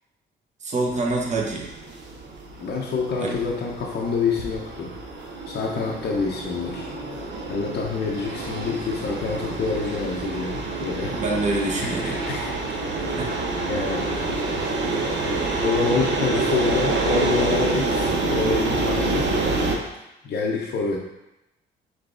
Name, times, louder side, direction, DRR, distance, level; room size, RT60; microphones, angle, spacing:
voice 1, 0.6-1.7 3.2-3.3 11.1-12.2 13.2-13.3, right 2 dB, 35° right, -1 dB, 0.8 m, -26 dB
sound 1, 0.8-19.8, right 2 dB, 65° right, 0.7 m, -27 dB
voice 2, 2.6-4.9 5.5-6.9 7.5-11.2 11.8-12.5 13.7-14.3 15.6-19.3 20.2-21.0, left 4 dB, 55° left, -2 dB, 0.6 m, -27 dB
4.8 x 3.8 x 2.4 m, 0.92 s
cardioid pair, 90°, 20 cm